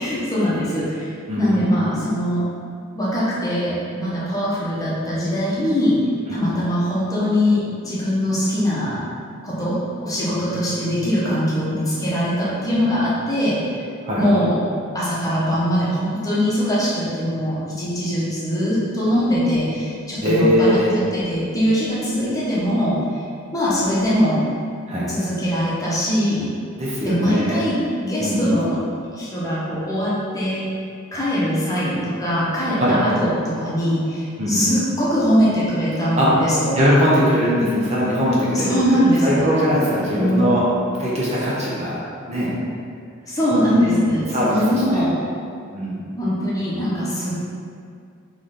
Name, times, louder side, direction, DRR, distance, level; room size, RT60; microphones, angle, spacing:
voice 1, 0.0-2.4 2.9-6.0 6.3-9.0 9.4-13.8 14.2-14.6 14.9-20.8 21.1-23.0 23.5-24.4 25.1-26.4 27.0-28.8 29.1-30.6 31.1-36.8 38.5-39.4 40.1-40.6 43.3-44.2 44.5-45.2 46.2-47.4, equal, 15° left, -9 dB, 0.9 m, -22 dB
voice 2, 1.3-1.6 6.3-6.4 14.0-14.3 20.2-20.9 24.9-25.1 26.8-27.7 28.2-28.5 32.8-33.0 34.4-34.7 36.1-36.3 36.7-40.7 41.0-42.0 42.3-42.5 43.5-44.0 44.3-45.0 45.7-46.0, equal, 30° right, -7 dB, 0.7 m, -20 dB
3.7 x 3.2 x 3.9 m, 2.3 s
head